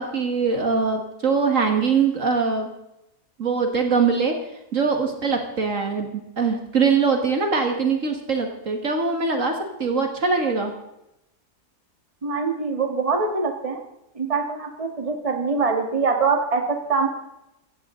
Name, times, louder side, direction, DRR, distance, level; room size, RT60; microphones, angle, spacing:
voice 1, 0.0-2.7 3.4-4.4 4.7-6.1 6.4-10.7, right 5 dB, 50° right, 4 dB, 2.0 m, -22 dB
voice 2, 12.2-13.8 14.2-17.1, right 4 dB, 20° right, 4 dB, 1.8 m, -23 dB
16.0 x 15.0 x 3.8 m, 0.87 s
omnidirectional pair, 1.7 m